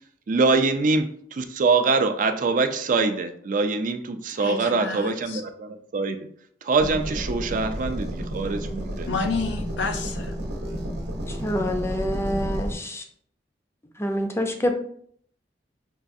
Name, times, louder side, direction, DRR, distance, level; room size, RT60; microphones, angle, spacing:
voice 1, 0.3-6.2 6.6-9.1, right 3 dB, 50° right, 0.4 m, -24 dB
voice 2, 4.4-5.4 9.1-10.4, left 4 dB, 85° left, 0.5 m, -30 dB
sound 1, 6.8-12.7, equal, 65° right, 0.8 m, -31 dB
voice 3, 11.3-13.0 14.0-14.7, equal, 15° left, 0.5 m, -27 dB
6.1 x 2.4 x 2.6 m
head